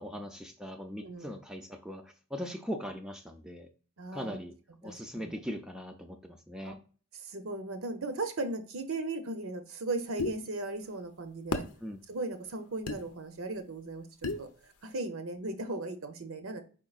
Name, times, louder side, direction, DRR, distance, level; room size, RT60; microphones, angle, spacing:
voice 1, 0.0-3.7 4.1-4.5 4.8-6.8 11.8-12.0, equal, 5° right, 4 dB, 0.3 m, -40 dB
voice 2, 1.0-1.3 2.4-2.5 4.0-4.4 5.1-5.3 6.6-6.7 7.2-11.7 12.1-14.1 14.4-14.5 14.8-16.6, right 2 dB, 60° right, 8 dB, 0.7 m, -37 dB
sound 1, 10.2-10.4 11.5-11.7 12.9-13.0 14.2-14.5, left 3 dB, 85° left, 0.7 m, -32 dB
4.6 x 4.5 x 2.3 m, 0.38 s
head